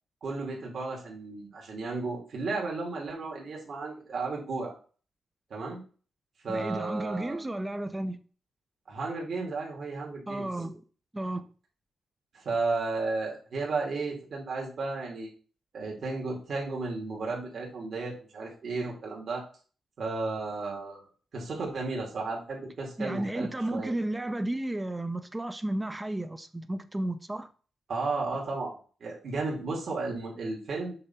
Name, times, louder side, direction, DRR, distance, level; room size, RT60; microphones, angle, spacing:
voice 1, 0.2-4.7 5.5-5.8 6.4-7.4 8.9-10.5 12.3-15.3 15.7-19.4 20.0-21.1 21.3-23.9 27.9-28.7 29.0-30.9, right 3 dB, 60° right, 2.4 m, -33 dB
voice 2, 6.5-8.2 10.3-10.8 11.1-11.5 23.0-27.5, right 1 dB, 15° right, 0.7 m, -33 dB
6.8 x 3.6 x 5.6 m
cardioid pair, 110°, 0 cm